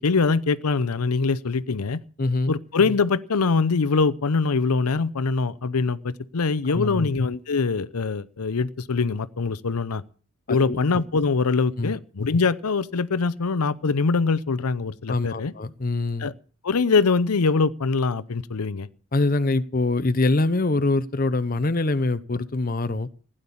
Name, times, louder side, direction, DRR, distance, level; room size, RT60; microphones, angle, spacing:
voice 1, 0.0-2.0 2.5-10.0 10.5-15.5 16.2-16.3 16.6-18.9, left 4 dB, 90° left, 0.7 m, -23 dB
voice 2, 2.2-2.5 6.7-7.1 10.5-10.8 11.8-11.9 15.1-16.3 19.1-23.1, left 2 dB, 40° left, 0.7 m, -24 dB
16.0 x 10.0 x 7.1 m
head